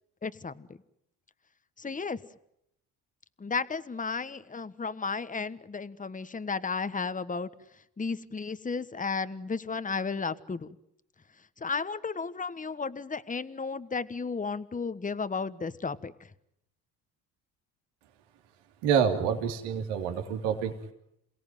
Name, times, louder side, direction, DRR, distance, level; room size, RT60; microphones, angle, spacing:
voice 1, 0.2-0.7 1.8-2.2 3.4-7.5 8.0-10.8 11.6-16.1, left 4 dB, 20° left, 14 dB, 1.3 m, -33 dB
voice 2, 18.8-20.9, right 7 dB, 80° right, 4 dB, 3.3 m, -27 dB
28.0 x 17.5 x 9.2 m, 0.78 s
supercardioid pair, 70°, 41 cm